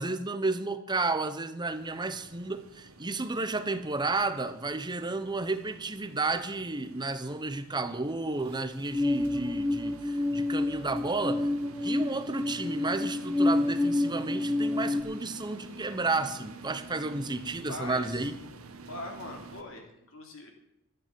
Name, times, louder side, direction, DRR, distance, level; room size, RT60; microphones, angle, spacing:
voice 1, 0.0-11.5 11.8-18.3, right 3 dB, 20° right, 10 dB, 0.9 m, -32 dB
sound 1, 1.7-19.6, right 2 dB, 70° right, 1.6 m, -49 dB
sound 2, 8.9-15.0, left 2 dB, ahead, 1.3 m, -28 dB
voice 2, 17.7-18.2 18.9-20.5, left 2 dB, 65° left, 2 dB, 3.4 m, -41 dB
13.5 x 9.5 x 7.6 m, 0.84 s
head